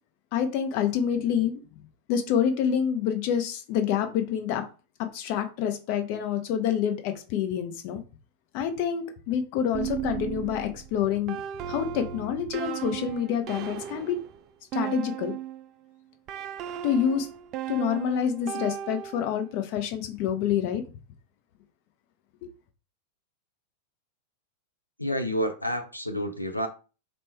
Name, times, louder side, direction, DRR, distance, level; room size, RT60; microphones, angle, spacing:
voice 1, 0.3-1.6 2.1-4.7 5.0-8.0 8.5-11.4 11.7-14.2 14.7-15.3 16.8-17.3 17.7-20.8, left 8 dB, 45° left, 0.7 m, -27 dB
sound 1, 9.7-15.7 16.3-19.5, right 10 dB, 35° right, 0.3 m, -36 dB
voice 2, 25.0-26.7, equal, 85° left, 0.4 m, -29 dB
4.3 x 2.1 x 4.4 m
figure-of-eight pair, 90°, 0 cm